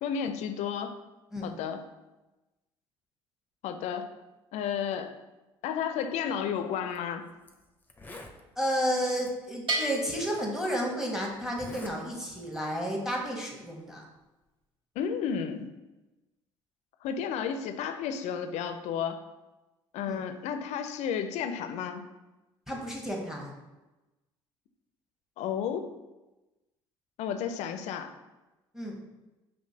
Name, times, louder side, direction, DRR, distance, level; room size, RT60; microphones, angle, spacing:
voice 1, 0.0-1.0 1.4-1.8 3.6-4.1 4.5-5.1 5.6-7.3 15.0-15.7 17.0-19.2 19.9-22.1 25.4-25.9 27.2-28.1, left 7 dB, 65° left, 8 dB, 0.4 m, -32 dB
Zipper (clothing), 6.8-7.0 7.5-7.6 7.8-8.4 9.2-9.3 10.3-10.4 11.5-12.0 12.3-12.6, left 2 dB, 15° left, 0.6 m, -45 dB
voice 2, 8.6-14.0 20.1-20.2 22.7-23.5 28.7-29.0, equal, 5° right, -1 dB, 1.1 m, -32 dB
Bell, 9.7-11.4, right 2 dB, 45° right, 1.1 m, -35 dB
5.3 x 2.7 x 2.7 m, 1.1 s
hypercardioid pair, 65°, 12 cm